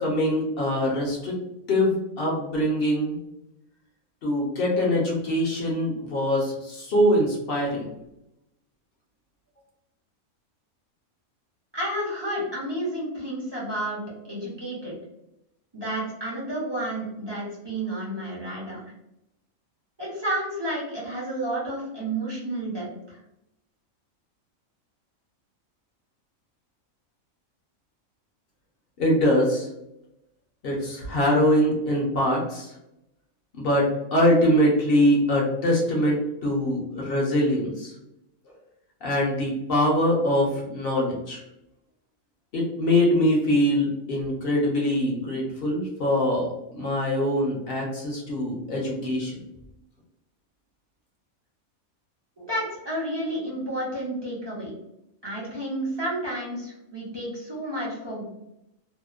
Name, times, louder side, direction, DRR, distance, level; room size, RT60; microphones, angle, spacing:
voice 1, 0.0-1.4 1.7-3.2 4.2-7.9 29.0-29.7 30.6-32.7 33.5-37.9 39.0-41.4 42.5-49.4, equal, 55° left, -2 dB, 0.7 m, -23 dB
voice 2, 11.7-14.9 15.7-18.8 20.0-23.2 52.4-54.7 55.2-58.2, right 1 dB, 30° right, -6 dB, 0.4 m, -31 dB
2.8 x 2.0 x 2.3 m, 0.86 s
omnidirectional pair, 1.5 m